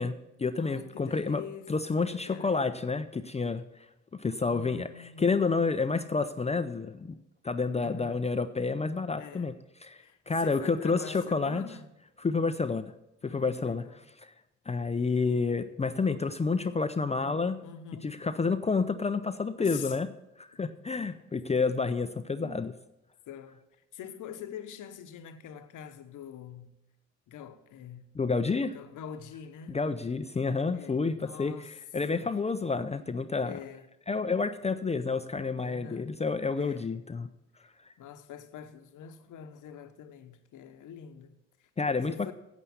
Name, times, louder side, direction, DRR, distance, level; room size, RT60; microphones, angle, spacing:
voice 1, 0.0-1.4 1.7-3.6 4.2-7.2 7.4-9.5 9.8-11.6 12.2-12.9 13.2-14.3 14.7-17.6 18.0-20.1 20.4-22.7 28.1-28.8 29.7-33.6 34.1-37.3 41.8-42.3, left 4 dB, 20° left, 0.5 m, -29 dB
voice 2, 0.6-2.7 4.4-5.5 7.8-8.2 9.2-9.6 9.9-11.9 13.2-14.0 17.6-18.3 19.6-20.0 22.4-22.6 23.3-23.6 23.9-26.7 27.3-28.1 28.5-29.8 30.7-31.7 32.1-32.3 33.4-33.9 35.6-36.2 36.6-36.9 37.6-37.7 38.0-41.7 42.1-42.3, left 8 dB, 65° left, 1.1 m, -45 dB
8.5 x 8.1 x 7.1 m
supercardioid pair, 60°, 33 cm